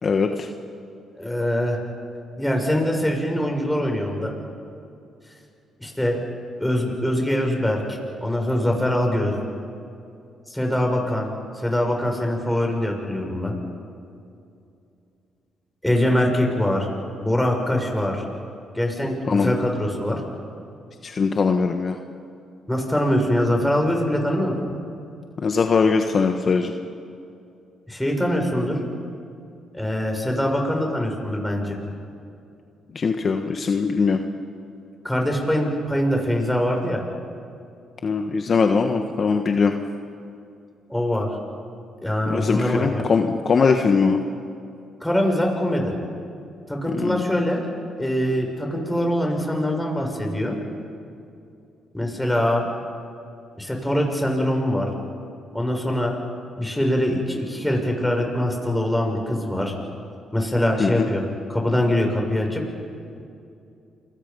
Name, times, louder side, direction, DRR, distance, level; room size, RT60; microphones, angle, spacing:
voice 1, 0.0-0.5 19.3-19.5 21.0-22.0 25.4-26.7 32.9-34.2 38.0-39.8 42.3-44.2 46.9-47.2 60.8-61.1, left 5 dB, 50° left, 5 dB, 1.4 m, -21 dB
voice 2, 1.2-1.8 2.4-4.3 5.8-6.2 6.6-7.8 8.2-9.3 10.5-11.3 11.6-13.5 15.8-16.9 17.2-18.2 18.7-20.2 22.7-24.5 27.9-28.8 29.7-31.8 35.0-37.0 40.9-41.3 42.0-43.1 45.0-45.9 46.7-47.7 48.0-50.6 51.9-52.7 53.6-54.9 55.5-56.2 56.6-59.7 60.3-61.2 61.5-62.6, left 1 dB, 5° left, 1 dB, 6.6 m, -23 dB
28.5 x 23.0 x 5.5 m, 2.6 s
supercardioid pair, 60°, 0 cm